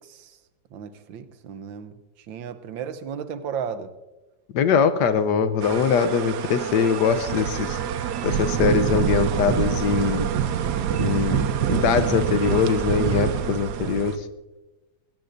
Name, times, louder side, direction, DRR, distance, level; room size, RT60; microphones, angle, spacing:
voice 1, 0.7-1.9 2.3-3.9 13.8-14.0, right 7 dB, 90° right, 11 dB, 1.6 m, -34 dB
voice 2, 4.5-7.8 8.2-10.3 11.0-14.2, left 6 dB, 70° left, 11 dB, 1.3 m, -22 dB
sound 1, 5.6-14.2, right 9 dB, 70° right, 1.2 m, -26 dB
20.0 x 16.5 x 2.6 m, 1.1 s
omnidirectional pair, 2.0 m